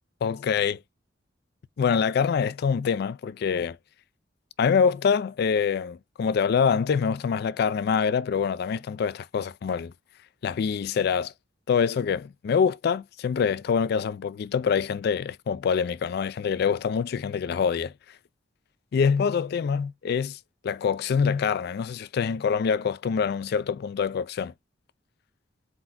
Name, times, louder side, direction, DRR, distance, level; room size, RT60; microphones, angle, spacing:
voice 1, 0.2-0.8 1.8-3.8 4.6-9.9 10.4-11.3 11.7-17.9 18.9-24.5, left 6 dB, 55° left, 0.3 m, -25 dB
4.5 x 3.9 x 2.5 m
head